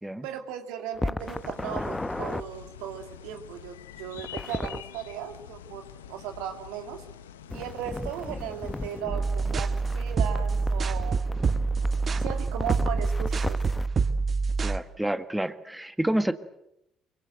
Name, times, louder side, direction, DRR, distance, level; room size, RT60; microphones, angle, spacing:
voice 1, 0.2-7.0 7.5-11.4 12.2-13.6, right 9 dB, 75° right, 6 dB, 2.2 m, -37 dB
sound 1, 1.0-2.4 4.2-4.8 7.5-13.9, left 2 dB, 15° left, 1.0 m, -35 dB
sound 2, 1.2-9.0, left 9 dB, 85° left, 0.9 m, -46 dB
sound 3, 9.1-14.8, right 4 dB, 40° right, 1.5 m, -26 dB
voice 2, 14.6-16.3, right 1 dB, 5° right, 10 dB, 1.7 m, -28 dB
24.0 x 23.0 x 8.0 m, 0.83 s
hypercardioid pair, 50°, 0 cm